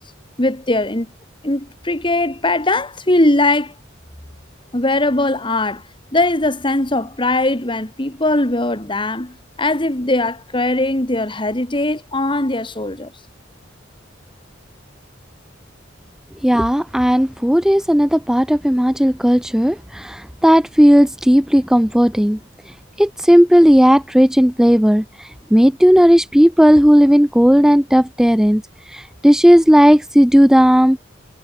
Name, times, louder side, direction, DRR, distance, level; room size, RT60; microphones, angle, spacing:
voice 1, 0.4-1.1 1.4-3.7 4.7-5.8 6.1-13.1, left 2 dB, 25° left, 1.9 m, -20 dB
voice 2, 16.4-22.4 23.0-28.6 28.9-31.0, equal, 5° right, 0.7 m, -13 dB
head